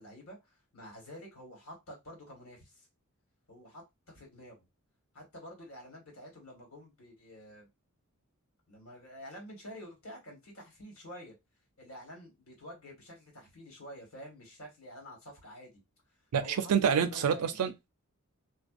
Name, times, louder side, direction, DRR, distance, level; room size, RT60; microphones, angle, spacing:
voice 1, 0.0-2.9 3.5-4.6 5.1-7.7 8.7-11.3 11.8-15.8 16.4-16.7 17.1-17.6, equal, 70° left, 1.5 m, -49 dB
voice 2, 16.3-17.9, right 7 dB, 90° right, 0.4 m, -28 dB
2.5 x 2.2 x 2.4 m
head